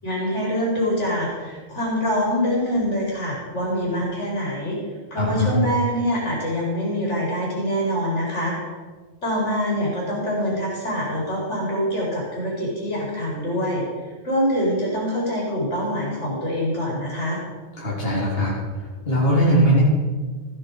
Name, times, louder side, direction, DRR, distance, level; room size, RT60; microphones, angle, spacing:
voice 1, 0.0-4.8 5.1-8.6 9.2-13.8 14.2-17.4, equal, 85° left, -4 dB, 4.6 m, -24 dB
voice 2, 5.2-5.5 17.8-18.5 19.1-19.8, equal, 55° left, -7 dB, 3.6 m, -20 dB
15.0 x 9.9 x 4.8 m, 1.4 s
omnidirectional pair, 1.2 m